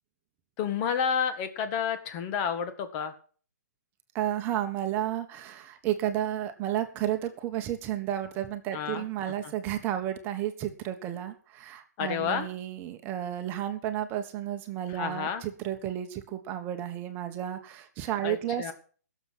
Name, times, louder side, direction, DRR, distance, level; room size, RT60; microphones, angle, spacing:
voice 1, 0.6-3.1 8.7-9.1 9.4-9.5 12.0-12.5 14.9-15.4 18.2-18.7, left 7 dB, 30° left, 9 dB, 1.7 m, -30 dB
voice 2, 4.1-18.7, right 11 dB, 20° right, 7 dB, 1.3 m, -32 dB
17.0 x 7.2 x 6.3 m, 0.43 s
hypercardioid pair, 150°, 9 cm